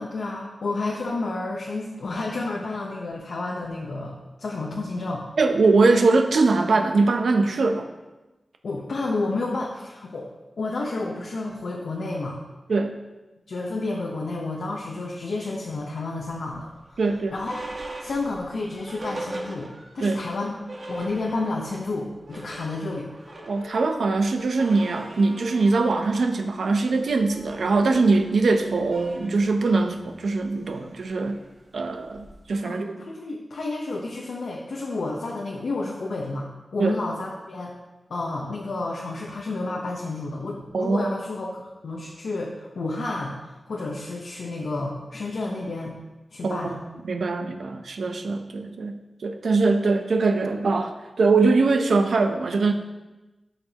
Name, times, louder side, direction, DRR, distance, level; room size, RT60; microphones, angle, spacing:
voice 1, 0.0-5.2 8.6-10.3 10.6-12.4 13.5-17.0 17.3-17.6 18.0-19.7 19.9-20.5 20.9-23.1 32.6-36.5 36.7-37.7 38.1-46.0 46.3-46.8, left 2 dB, 85° left, -3 dB, 1.0 m, -30 dB
voice 2, 5.4-7.9 12.7-13.0 17.0-17.3 20.0-20.3 23.5-31.4 31.7-33.0 36.8-37.0 40.7-41.1 46.4-46.8 47.0-52.7, right 3 dB, 85° right, 5 dB, 0.7 m, -22 dB
sound 1, 16.4-20.1 20.4-20.5 20.7-21.8 22.1-32.5, right 1 dB, 50° right, 1.4 m, -41 dB
13.0 x 5.8 x 3.0 m, 1.1 s
wide cardioid pair, 120°, 0 cm